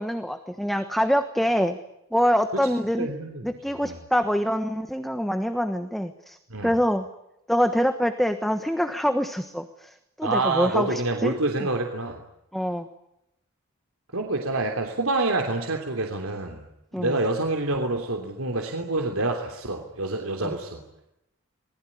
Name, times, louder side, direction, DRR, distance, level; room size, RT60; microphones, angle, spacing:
voice 1, 0.0-1.8 2.1-3.1 3.4-7.0 7.5-11.3 12.5-12.9 16.9-17.2 20.4-20.5, equal, ahead, 7 dB, 1.3 m, -25 dB
voice 2, 3.0-3.5 3.8-4.0 6.5-6.8 10.2-12.2 14.1-16.6 17.0-20.8, right 2 dB, 80° right, 2 dB, 3.2 m, -27 dB
27.5 x 20.5 x 9.9 m, 0.86 s
head